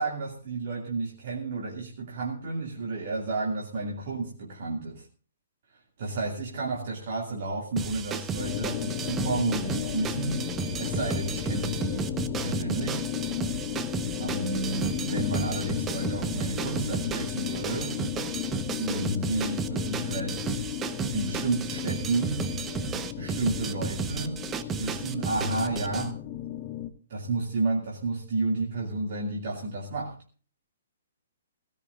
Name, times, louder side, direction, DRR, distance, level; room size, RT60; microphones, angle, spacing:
voice 1, 0.0-5.1 5.7-10.5 10.8-12.1 12.4-13.1 14.2-18.0 18.8-20.6 21.1-22.5 23.2-24.4 24.8-26.2 27.1-30.2, right 3 dB, 50° right, 2.5 m, -31 dB
sound 1, 7.8-26.1, right 6 dB, 20° right, 1.2 m, -33 dB
sound 2, 8.4-26.9, left 11 dB, 30° left, 1.4 m, -34 dB
18.0 x 17.5 x 2.5 m
figure-of-eight pair, 120°, 0 cm